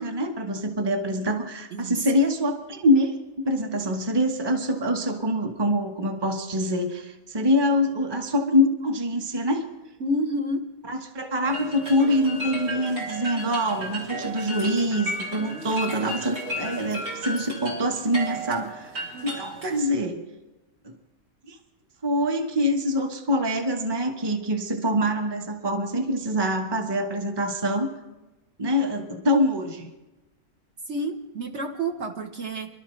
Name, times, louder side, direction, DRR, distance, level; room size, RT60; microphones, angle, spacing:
voice 1, 0.0-3.1 3.4-9.6 10.9-18.9 19.2-20.2 20.8-20.9 21.5-21.6 22.0-27.9 28.6-29.9, equal, 20° right, 4 dB, 1.1 m, -25 dB
voice 2, 10.0-10.7 30.9-32.7, right 1 dB, 50° right, 3 dB, 1.3 m, -29 dB
sound 1, 11.4-19.8, equal, 85° right, 4.1 m, -34 dB
26.5 x 12.5 x 3.2 m, 1.1 s
omnidirectional pair, 1.6 m